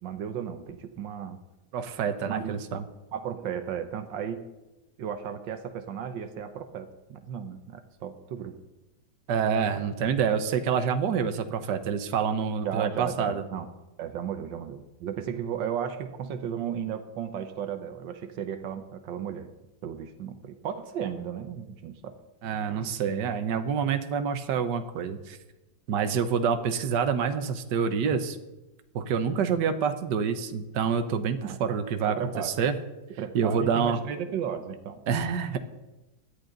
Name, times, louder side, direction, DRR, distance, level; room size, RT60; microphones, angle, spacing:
voice 1, 0.0-1.4 2.2-2.6 3.1-4.4 5.0-8.5 12.6-13.7 14.0-19.5 19.8-22.1 31.4-31.8 32.1-32.5 33.2-35.0, right 8 dB, 85° right, 8 dB, 1.6 m, -34 dB
voice 2, 1.7-2.8 9.3-13.4 22.4-25.4 25.9-28.4 28.9-32.2 32.4-32.8 33.3-34.0 35.1-35.6, right 7 dB, 70° right, 8 dB, 1.6 m, -27 dB
17.0 x 12.0 x 3.9 m, 1.0 s
omnidirectional pair, 2.0 m